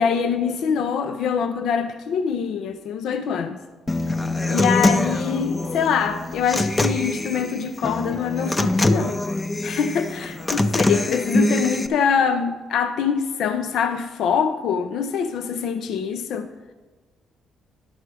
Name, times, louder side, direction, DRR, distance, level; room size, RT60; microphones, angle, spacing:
voice 1, 0.0-3.6 4.5-9.2 9.6-16.5, left 7 dB, 75° left, 9 dB, 0.5 m, -24 dB
Human voice / Acoustic guitar, 3.9-11.9, left 2 dB, 20° left, 0.5 m, -23 dB
11.5 x 5.9 x 4.7 m, 1.3 s
cardioid pair, 90°, 0 cm